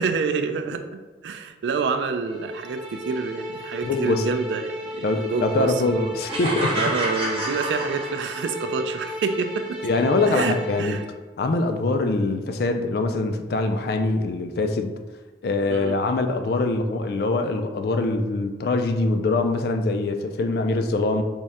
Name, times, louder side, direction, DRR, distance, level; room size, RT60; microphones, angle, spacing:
voice 1, 0.0-6.2 6.7-9.8 10.3-11.0 15.7-16.0, right 4 dB, 80° right, 8 dB, 0.3 m, -28 dB
sound 1, 2.3-11.1, equal, 5° right, 0.4 m, -35 dB
voice 2, 3.8-4.2 5.0-6.7 9.8-10.9 11.4-14.9 15.4-21.2, left 2 dB, 60° left, 6 dB, 0.3 m, -23 dB
sound 2, 6.3-8.6, right 1 dB, 35° right, 0.8 m, -28 dB
3.6 x 2.1 x 4.1 m, 1.3 s
head